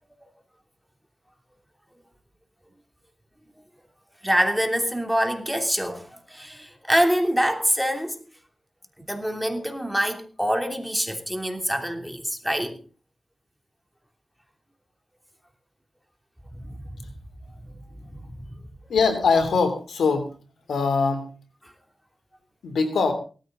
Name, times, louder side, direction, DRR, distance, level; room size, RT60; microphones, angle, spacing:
voice 1, 4.2-8.2 9.0-12.8 16.6-16.8 17.6-18.5 21.6-21.7, equal, ahead, 3.0 m, -26 dB
voice 2, 18.9-20.3 20.7-21.3 22.6-23.1, left 4 dB, 90° left, 3.0 m, -22 dB
18.0 x 14.0 x 3.9 m
cardioid pair, 55°, 0 cm